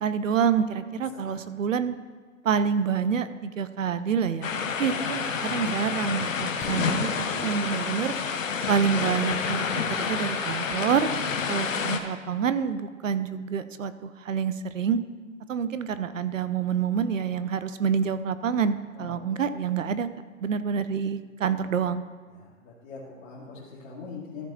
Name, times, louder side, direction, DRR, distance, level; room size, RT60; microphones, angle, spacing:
voice 1, 0.0-2.0 2.4-4.5 4.8-8.1 8.7-11.1 11.5-15.0 15.5-20.1 20.4-22.0, right 7 dB, 70° right, 12 dB, 0.7 m, -27 dB
sound 1, 4.4-12.0, left 6 dB, 75° left, 1.1 m, -29 dB
voice 2, 4.8-5.2 5.4-5.6 18.9-19.1 19.6-19.7 21.4-21.5 22.3-24.5, left 4 dB, 35° left, -9 dB, 2.4 m, -43 dB
Fireworks, 6.6-10.5, left 1 dB, 15° left, 1.4 m, -42 dB
14.0 x 4.7 x 4.3 m, 1.5 s
hypercardioid pair, 140°, 40 cm